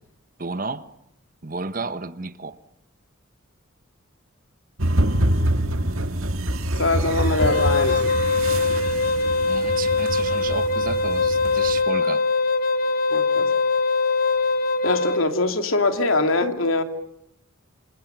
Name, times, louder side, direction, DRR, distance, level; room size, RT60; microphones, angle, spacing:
voice 1, 0.4-0.9 1.4-2.6 9.5-12.3, right 3 dB, 40° right, 1.3 m, -32 dB
sound 1, 4.8-11.8, right 1 dB, 90° right, 2.0 m, -25 dB
voice 2, 6.8-8.1 13.1-13.5 14.8-16.8, left 2 dB, 80° left, 2.8 m, -22 dB
Wind instrument woodwind instrument, 7.4-15.2, left 3 dB, 45° left, 1.1 m, -22 dB
28.0 x 27.5 x 7.0 m
head